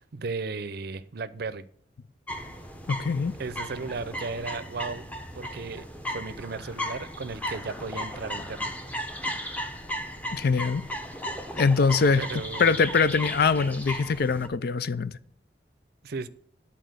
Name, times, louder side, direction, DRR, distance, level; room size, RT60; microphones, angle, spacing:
voice 1, 0.0-1.7 3.4-5.1 5.4-8.7 9.1-9.2 12.2-12.8 16.0-16.3, right 4 dB, 60° right, 0.6 m, -35 dB
sound 1, 2.3-14.5, equal, 10° left, 0.8 m, -36 dB
voice 2, 2.9-3.3 10.3-10.8 11.6-12.2 12.6-15.2, left 5 dB, 60° left, 0.5 m, -23 dB
10.0 x 4.3 x 7.7 m
head